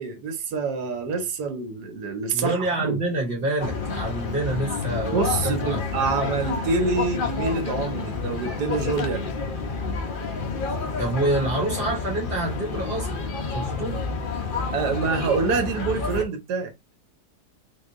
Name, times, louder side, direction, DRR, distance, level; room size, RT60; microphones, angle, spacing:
voice 1, 0.0-3.0 5.1-9.3 14.7-16.7, right 4 dB, 80° right, 1.3 m, -26 dB
voice 2, 2.3-5.8 11.0-13.1 13.5-14.0 14.3-14.4, right 2 dB, 35° right, 2.2 m, -27 dB
sound 1, 3.6-16.2, left 4 dB, 50° left, 0.6 m, -29 dB
3.7 x 3.6 x 2.5 m
omnidirectional pair, 1.8 m